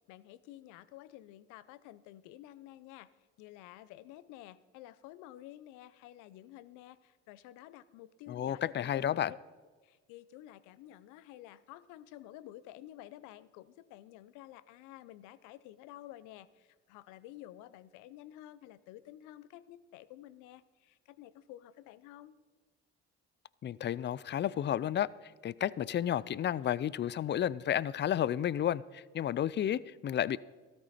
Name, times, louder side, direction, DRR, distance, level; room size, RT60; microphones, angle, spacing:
voice 1, 0.1-3.1 3.4-9.4 9.8-22.4, left 14 dB, 80° left, 17 dB, 0.6 m, -51 dB
voice 2, 8.3-9.3 23.6-25.1 25.4-30.4, left 10 dB, 40° left, 21 dB, 0.4 m, -32 dB
14.0 x 13.0 x 4.2 m, 1.4 s
supercardioid pair, 70°, 30 cm